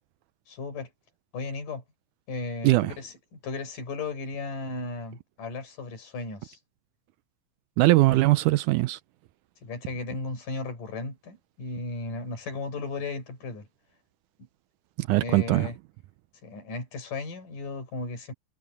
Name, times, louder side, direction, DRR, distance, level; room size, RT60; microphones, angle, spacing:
voice 1, 0.5-0.9 1.3-1.8 2.3-3.1 3.4-6.6 8.1-8.2 9.6-13.7 15.2-15.8 16.4-18.3, left 3 dB, 70° left, 6.9 m, -35 dB
voice 2, 7.8-9.0 15.0-15.7, right 19 dB, 80° right, 1.9 m, -21 dB
omnidirectional pair, 3.9 m